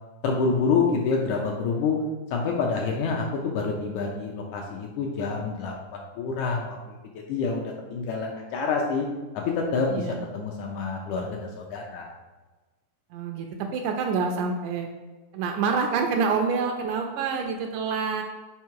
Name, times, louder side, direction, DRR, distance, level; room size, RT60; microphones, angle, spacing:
voice 1, 0.2-2.0 2.3-9.0 9.3-10.1 10.3-12.1, left 4 dB, 75° left, 0 dB, 1.8 m, -27 dB
voice 2, 9.9-10.3 13.1-13.5 13.7-14.9 15.3-18.2, right 5 dB, 80° right, 4 dB, 1.9 m, -27 dB
5.6 x 4.8 x 4.6 m, 1.2 s
omnidirectional pair, 4.0 m